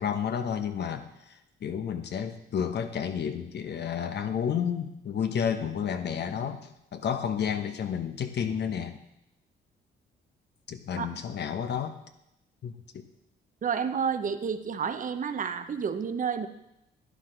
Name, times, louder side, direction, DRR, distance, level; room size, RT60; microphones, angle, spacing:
voice 1, 0.0-9.0 10.7-12.0 12.6-13.0, left 7 dB, 60° left, 8 dB, 1.0 m, -31 dB
voice 2, 13.6-16.5, right 6 dB, 40° right, 10 dB, 0.8 m, -30 dB
11.5 x 9.7 x 3.9 m, 0.85 s
cardioid pair, 90°, 20 cm